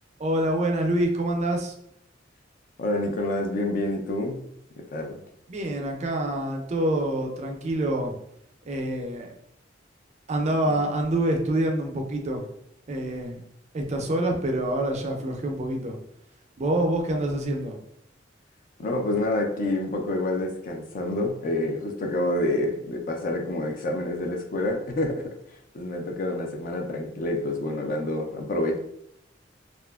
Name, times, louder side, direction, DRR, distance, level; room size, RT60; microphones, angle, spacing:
voice 1, 0.2-1.7 5.5-8.1 8.7-9.3 10.3-12.4 12.9-13.4 13.7-16.0 16.6-17.8, right 1 dB, 35° right, 2 dB, 0.4 m, -26 dB
voice 2, 2.8-4.4 4.9-5.2 10.7-10.9 18.8-25.2 25.7-28.8, left 1 dB, 45° left, 3 dB, 0.4 m, -28 dB
2.8 x 2.4 x 2.3 m, 0.75 s
head